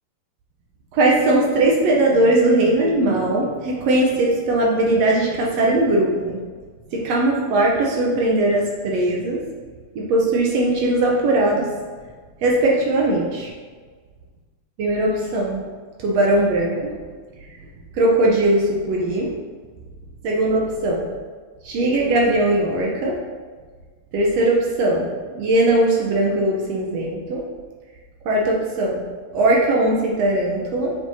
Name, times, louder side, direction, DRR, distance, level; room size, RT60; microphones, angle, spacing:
voice 1, 0.9-6.4 6.9-9.5 10.0-11.7 12.4-13.5 14.8-15.6 16.0-17.0 17.9-19.3 20.2-21.1 21.6-23.2 24.1-27.5 28.3-29.0 29.3-31.0, right 1 dB, 70° right, -2 dB, 1.8 m, -19 dB
7.4 x 6.2 x 2.8 m, 1.5 s
omnidirectional pair, 3.4 m